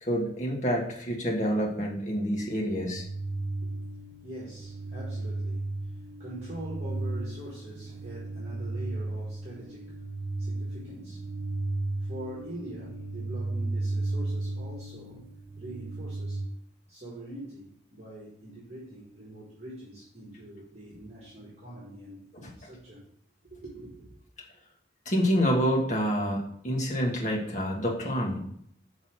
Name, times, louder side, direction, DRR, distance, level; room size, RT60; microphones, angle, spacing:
voice 1, 0.0-3.0 25.0-28.4, equal, 40° left, -1 dB, 1.6 m, -27 dB
sound 1, 2.7-16.5, right 2 dB, 75° right, 0.9 m, -35 dB
voice 2, 4.2-10.0 10.4-11.3 12.0-15.3 15.6-16.4 16.9-23.0 23.4-24.1, right 1 dB, 35° right, -5 dB, 1.6 m, -44 dB
5.8 x 4.0 x 6.1 m, 0.69 s
head